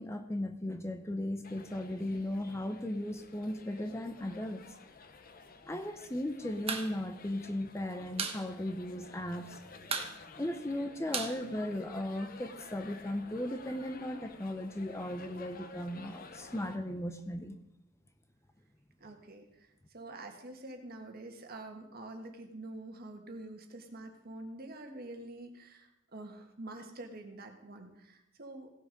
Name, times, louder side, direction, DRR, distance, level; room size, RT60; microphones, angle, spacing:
voice 1, 0.0-4.7 5.7-9.6 10.4-17.6, left 1 dB, 15° left, 7 dB, 0.6 m, -37 dB
sound 1, 1.4-16.8, left 4 dB, 45° left, 0.9 m, -52 dB
sound 2, 6.7-6.9 7.2-7.3 7.6-8.4 8.7-8.8 9.1-9.5 9.8-12.2, right 5 dB, 30° right, 1.1 m, -36 dB
voice 2, 19.0-28.7, right 2 dB, 50° right, 4 dB, 1.5 m, -46 dB
16.5 x 6.3 x 5.2 m, 0.87 s
head